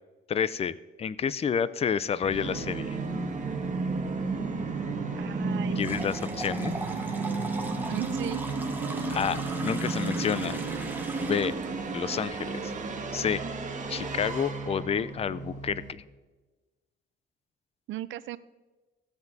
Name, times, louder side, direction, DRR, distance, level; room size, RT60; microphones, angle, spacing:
voice 1, 0.3-3.0 5.8-6.8 9.1-10.6 11.2-11.5 11.9-12.7 13.1-13.4 13.9-16.0, left 7 dB, 30° left, 17 dB, 0.4 m, -29 dB
Musical instrument, 2.2-15.9, right 3 dB, 40° right, 1.4 m, -33 dB
voice 2, 5.2-6.1 7.9-8.4 17.9-18.4, right 14 dB, 70° right, 15 dB, 0.4 m, -36 dB
sound 1, 5.7-11.7, right 2 dB, 10° right, 0.9 m, -40 dB
16.0 x 7.9 x 2.6 m, 1.2 s
cardioid pair, 90°, 20 cm